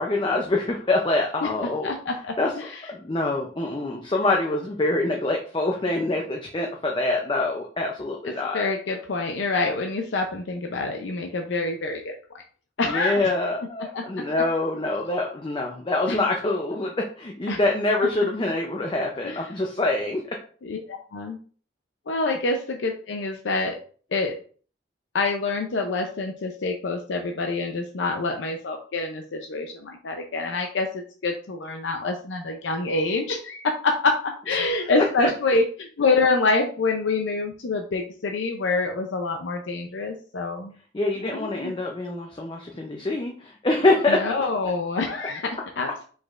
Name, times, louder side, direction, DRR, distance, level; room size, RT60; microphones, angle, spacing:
voice 1, 0.0-1.9 2.4-8.7 12.8-20.2 34.6-34.8 35.2-35.3 40.9-44.2, left 2 dB, 25° left, 1 dB, 0.5 m, -25 dB
voice 2, 1.8-2.8 8.5-12.1 12.8-13.1 13.9-14.0 16.1-16.2 17.5-17.6 19.2-19.4 20.6-21.4 22.1-23.8 24.1-24.4 25.1-30.9 31.2-40.7 41.2-41.7 44.1-46.0, left 3 dB, 85° left, 3 dB, 0.5 m, -26 dB
4.9 x 4.1 x 2.5 m, 0.43 s
head